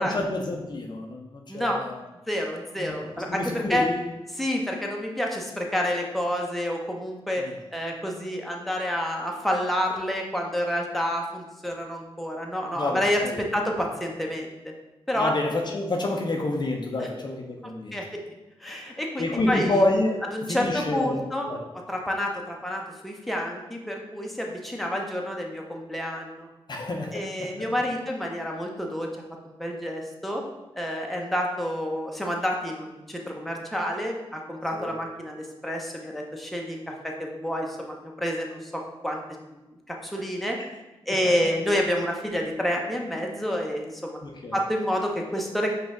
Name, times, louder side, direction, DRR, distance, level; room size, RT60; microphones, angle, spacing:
voice 1, 0.0-2.0 2.8-3.0 3.3-4.0 7.4-7.5 12.8-13.4 15.2-18.0 19.2-20.2 20.5-21.6 26.7-27.7 34.7-34.9 41.2-41.3 44.2-44.6, left 2 dB, 45° left, 1 dB, 0.6 m, -28 dB
voice 2, 1.5-1.8 2.3-3.9 4.3-14.7 15.1-15.4 17.0-17.1 17.6-18.2 18.6-19.8 20.3-21.5 21.7-26.5 27.1-29.1 29.4-30.4 30.8-36.8 37.0-39.2 39.9-40.6 41.1-44.2 44.5-45.7, equal, ahead, 0 dB, 0.8 m, -29 dB
5.0 x 2.4 x 3.7 m, 1.0 s
cardioid pair, 50°, 10 cm